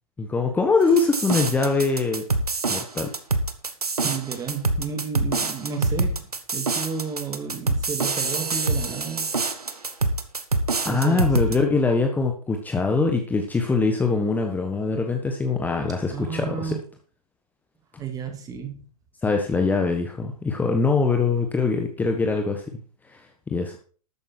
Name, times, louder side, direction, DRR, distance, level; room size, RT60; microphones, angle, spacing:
voice 1, 0.2-2.2 2.7-3.1 10.9-16.7 19.2-22.8 23.1-23.7, left 4 dB, 10° left, 1.3 m, -23 dB
sound 1, 1.0-11.6, right 3 dB, 80° right, 1.5 m, -25 dB
voice 2, 4.0-9.3 10.8-11.3 16.1-16.8 18.0-18.9, right 6 dB, 20° right, 2.5 m, -32 dB
12.5 x 9.0 x 4.5 m
figure-of-eight pair, 110°, 19 cm